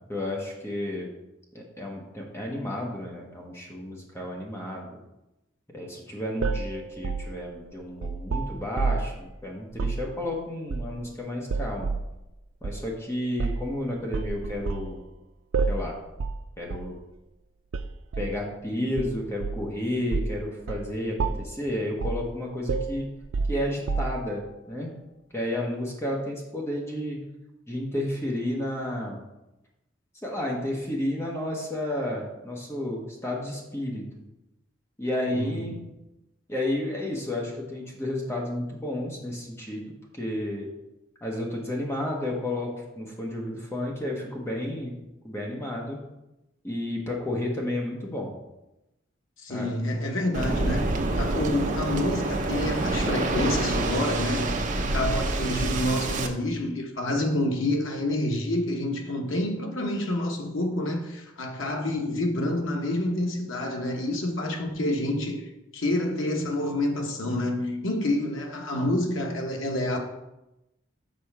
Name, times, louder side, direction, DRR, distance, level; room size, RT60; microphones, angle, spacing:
voice 1, 0.1-1.1 1.5-4.9 5.7-11.9 12.6-15.0 15.7-16.0 16.6-17.0 18.2-23.1 23.5-24.9 25.3-27.2 27.7-29.2 30.2-34.0 35.0-35.8 36.5-39.8 40.1-40.7 41.2-44.9 45.2-46.0 46.6-48.3 49.5-49.8, left 1 dB, 15° left, 1.1 m, -31 dB
sound 1, 6.4-9.2 9.7-10.0 10.7-11.1 11.5-12.1 12.6-12.8 13.4-13.7 14.1-14.9 15.5-15.9 16.2-16.4 16.7-16.9 17.7-18.4 19.0-19.7 20.1-20.4 20.7-20.9 21.2-21.6 22.0-22.3 22.7-24.4, right 4 dB, 80° right, 0.4 m, -29 dB
voice 2, 49.4-65.4 65.7-70.0, left 1 dB, 80° left, 1.2 m, -28 dB
Waves surf, 50.3-56.3, right 2 dB, 40° right, 0.6 m, -27 dB
6.6 x 4.3 x 5.9 m
head